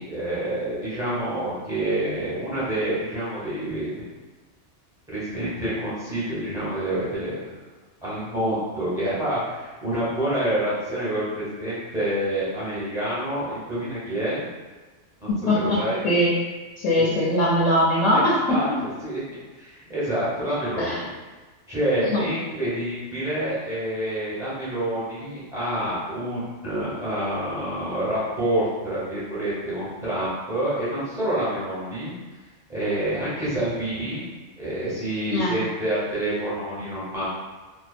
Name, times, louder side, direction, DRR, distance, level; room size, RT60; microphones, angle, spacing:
voice 1, 0.0-3.9 5.1-7.4 8.0-14.5 15.2-16.0 17.0-17.1 18.1-19.2 19.6-21.1 21.7-32.1 32.7-34.3 34.6-37.2, right 1 dB, 5° right, -10 dB, 0.8 m, -27 dB
voice 2, 15.3-16.3 16.8-18.3 20.8-20.9 22.0-22.2 35.3-35.6, left 1 dB, 80° left, -6 dB, 0.9 m, -21 dB
2.6 x 2.3 x 2.4 m, 1.3 s
omnidirectional pair, 1.3 m